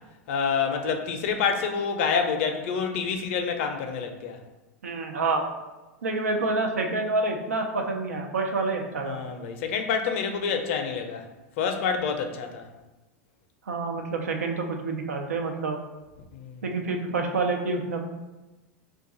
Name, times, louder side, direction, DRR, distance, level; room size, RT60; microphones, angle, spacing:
voice 1, 0.3-4.4 9.0-11.2 11.6-12.7 16.3-16.6, left 6 dB, 60° left, 5 dB, 0.4 m, -27 dB
voice 2, 4.8-5.4 6.0-9.2 13.7-15.8 16.6-18.0, right 3 dB, 80° right, 3 dB, 0.5 m, -27 dB
2.4 x 2.3 x 3.9 m, 1.1 s
hypercardioid pair, 90°, 8 cm